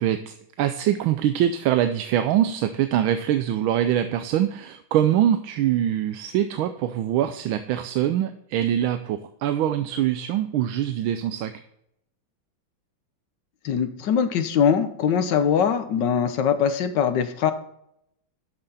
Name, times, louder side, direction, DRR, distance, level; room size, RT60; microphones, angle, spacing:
voice 1, 0.0-11.5, right 11 dB, 80° right, 9 dB, 1.4 m, -23 dB
voice 2, 13.6-17.5, left 7 dB, 65° left, 10 dB, 1.4 m, -22 dB
12.0 x 5.9 x 4.1 m, 0.77 s
omnidirectional pair, 2.3 m